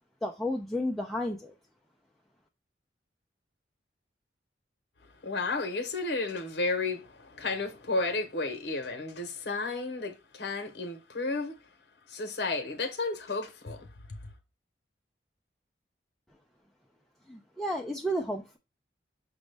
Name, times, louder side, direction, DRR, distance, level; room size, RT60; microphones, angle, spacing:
voice 1, 0.2-1.5 17.3-18.6, equal, ahead, 0.3 m, -32 dB
voice 2, 5.2-11.6 12.1-14.2, left 3 dB, 70° left, 0.8 m, -32 dB
6.0 x 2.1 x 3.2 m
head